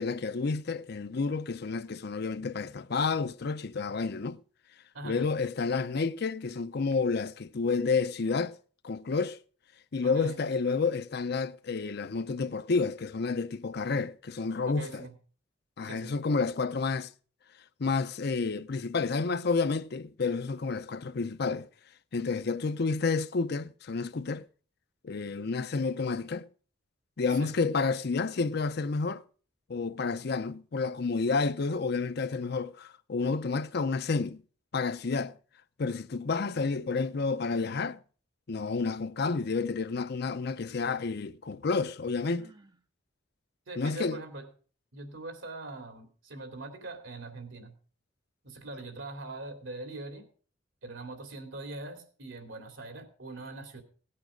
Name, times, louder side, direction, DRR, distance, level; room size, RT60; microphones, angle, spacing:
voice 1, 0.0-4.4 5.0-8.5 8.8-9.4 9.9-15.1 15.8-17.1 17.8-21.7 22.1-24.4 25.0-26.5 27.2-29.2 29.7-34.4 34.7-35.4 35.8-38.0 38.5-42.5 43.8-44.2, left 4 dB, 55° left, 0.6 m, -30 dB
voice 2, 4.9-5.3 10.0-10.4 14.7-15.1 15.8-16.1 27.3-27.5 43.7-44.5 44.9-47.7 48.4-50.2 50.8-53.8, right 2 dB, 80° right, 2.9 m, -42 dB
Sigh, 42.2-42.8, right 2 dB, 20° right, 0.6 m, -57 dB
17.5 x 8.7 x 5.1 m
head